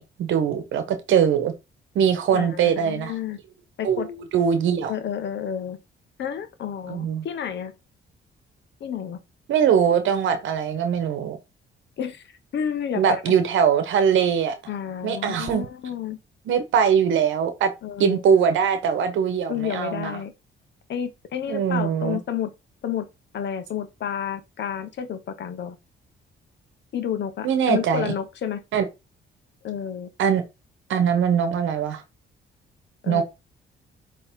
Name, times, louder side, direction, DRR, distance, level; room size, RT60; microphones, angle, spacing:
voice 1, 0.0-1.5 1.9-3.1 3.8-4.9 6.9-7.2 9.5-11.4 13.0-14.5 15.0-15.7 16.5-17.7 18.0-20.2 21.5-22.2 27.4-28.1 28.7-28.8 30.2-30.4 30.9-32.0 33.1-33.2, right 7 dB, 75° right, 1.0 m, -21 dB
voice 2, 2.3-3.4 3.8-4.1 4.9-5.8 6.2-7.7 8.8-9.2 12.0-12.2 12.5-13.3 14.7-16.2 17.8-18.2 19.5-20.3 20.9-22.5 22.8-23.1 23.3-25.8 26.9-28.6 29.6-30.1 33.0-33.2, left 9 dB, 65° left, 1.1 m, -30 dB
8.1 x 3.2 x 3.6 m
cardioid pair, 90°, 20 cm